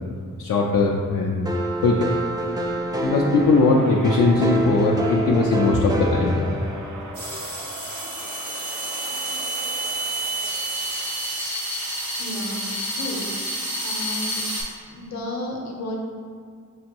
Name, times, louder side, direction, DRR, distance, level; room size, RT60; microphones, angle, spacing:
voice 1, 0.4-1.5 1.8-2.1 3.0-6.6, left 3 dB, 70° left, -2 dB, 0.5 m, -20 dB
sound 1, 1.4-7.3, right 1 dB, 10° right, 0.3 m, -27 dB
sound 2, 3.4-11.3, right 3 dB, 65° right, 0.5 m, -40 dB
sound 3, 7.1-14.6, right 1 dB, 90° right, 1.3 m, -29 dB
voice 2, 12.2-13.2 13.8-14.4 14.9-16.0, left 1 dB, 55° left, 0 dB, 0.8 m, -32 dB
6.3 x 2.6 x 2.9 m, 2.1 s
wide cardioid pair, 95°, 33 cm